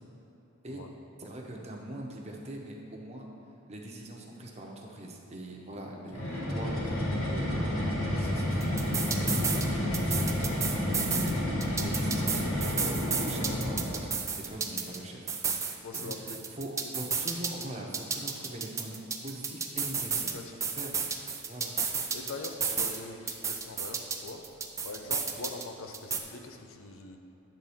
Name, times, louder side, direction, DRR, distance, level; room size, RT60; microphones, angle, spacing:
voice 1, 1.2-3.3 3.7-7.9 8.1-20.4 20.8-20.9 21.5-21.7 25.3-25.4, right 1 dB, 30° right, 0 dB, 0.9 m, -42 dB
sound 1, 6.1-14.1, left 1 dB, 90° left, 1.8 m, -30 dB
sound 2, 8.6-9.7 9.9-11.3 11.6-15.0 15.3-17.7 17.9-20.3 20.6-23.0 23.3-25.7 25.9-26.2, right 6 dB, 15° right, 0.4 m, -32 dB
voice 2, 15.8-16.4 20.1-20.6 22.1-24.4 24.8-27.2, left 3 dB, 75° left, 5 dB, 0.7 m, -42 dB
9.7 x 3.7 x 7.1 m, 2.9 s
head